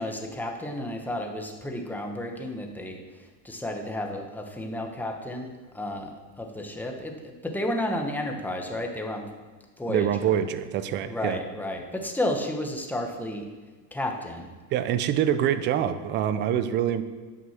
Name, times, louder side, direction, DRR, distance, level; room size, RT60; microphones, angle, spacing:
voice 1, 0.0-3.0 3.4-9.2 9.8-10.3 11.0-13.4 13.9-14.5, left 1 dB, 5° left, 2 dB, 1.1 m, -32 dB
voice 2, 9.9-11.4 14.7-17.0, right 10 dB, 25° right, 12 dB, 0.4 m, -25 dB
9.4 x 6.0 x 5.7 m, 1.3 s
supercardioid pair, 130°, 48 cm